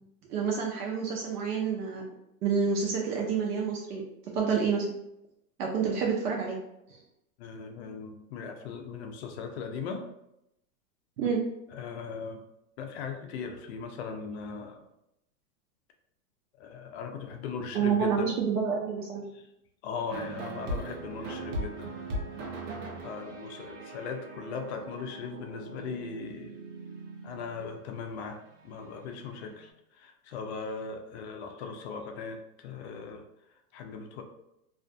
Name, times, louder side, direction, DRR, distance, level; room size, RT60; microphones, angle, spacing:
voice 1, 0.3-2.0 2.4-4.0 4.3-4.9 5.6-6.6 11.2-11.4 17.7-19.2, right 6 dB, 85° right, -1 dB, 0.7 m, -28 dB
voice 2, 7.4-10.1 11.7-12.4 12.8-14.8 16.6-18.3 19.3-19.5 19.8-21.9 23.0-26.5 27.2-33.2 33.7-34.2, left 5 dB, 50° left, 5 dB, 0.5 m, -39 dB
sound 1, 20.1-29.7, right 1 dB, 55° right, 0.8 m, -40 dB
2.5 x 2.4 x 2.2 m, 0.82 s
hypercardioid pair, 135°, 45 cm